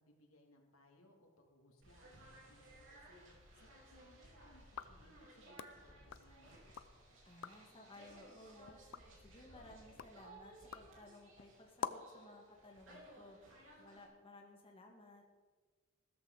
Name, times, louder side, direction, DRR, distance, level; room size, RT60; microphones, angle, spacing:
voice 1, 0.0-6.6, left 1 dB, 90° left, 1 dB, 2.6 m, -67 dB
sound 1, 1.8-14.0, right 1 dB, 65° right, 3.8 m, -60 dB
sound 2, 4.6-7.0 7.3-7.8 8.2-12.2, left 6 dB, 70° left, 0.6 m, -50 dB
voice 2, 7.2-8.8 9.2-13.4 13.8-15.2, left 2 dB, 25° left, 0 dB, 1.7 m, -58 dB
15.0 x 13.5 x 4.0 m, 1.4 s
head